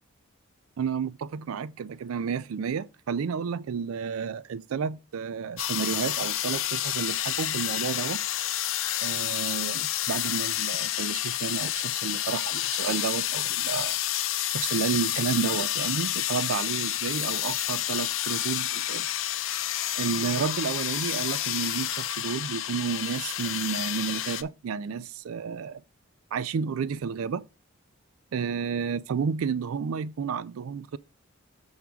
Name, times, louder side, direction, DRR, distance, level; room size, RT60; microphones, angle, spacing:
voice 1, 0.8-8.2 9.0-14.0 14.5-19.1 20.0-25.8 26.3-27.5 28.3-31.0, right 6 dB, 80° right, 0.4 m, -31 dB
sound 1, 5.6-24.4, left 13 dB, 70° left, 0.6 m, -29 dB
7.1 x 3.4 x 6.1 m
head